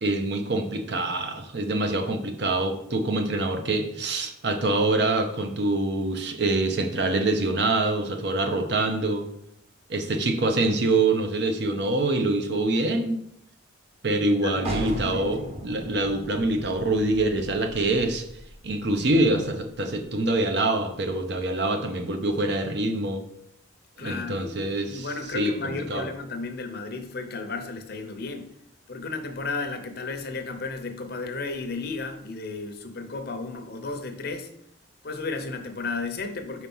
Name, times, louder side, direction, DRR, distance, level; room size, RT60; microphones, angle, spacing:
voice 1, 0.0-9.2 9.9-13.2 14.0-18.2 18.6-23.2 24.0-25.1 25.3-26.1, right 2 dB, 55° right, 5 dB, 0.8 m, -25 dB
voice 2, 14.4-15.5 24.0-24.5 24.9-28.5 28.9-34.5 35.0-36.7, left 3 dB, 50° left, 7 dB, 0.7 m, -33 dB
sound 1, 14.6-20.2, right 1 dB, 30° right, 1.1 m, -38 dB
4.6 x 4.5 x 5.4 m, 0.76 s
head